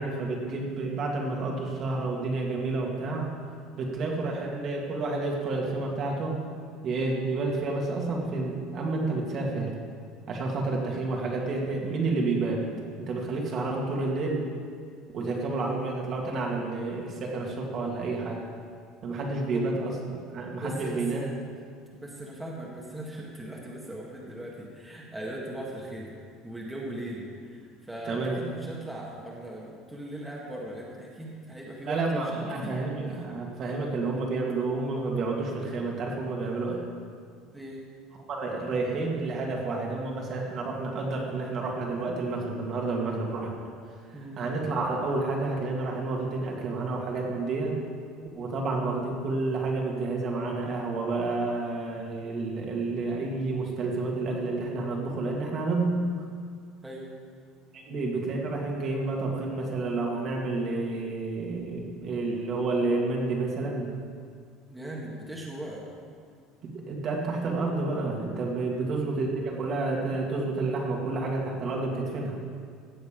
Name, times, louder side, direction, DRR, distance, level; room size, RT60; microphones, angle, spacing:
voice 1, 0.0-3.3 3.8-6.4 6.8-9.8 10.3-12.6 13.0-14.4 15.1-18.4 19.0-21.3 28.1-28.4 31.9-36.8 38.3-43.5 44.1-47.8 48.3-56.1 57.7-63.9 66.6-72.5, right 3 dB, 40° right, -1 dB, 2.0 m, -30 dB
voice 2, 20.5-21.3 21.9-26.2 26.4-32.8 37.5-37.8 44.1-44.4 56.8-57.1 64.7-65.8 68.6-69.0, right 1 dB, 5° right, -4 dB, 1.7 m, -39 dB
16.0 x 6.8 x 5.2 m, 2.1 s
cardioid pair, 140°, 0 cm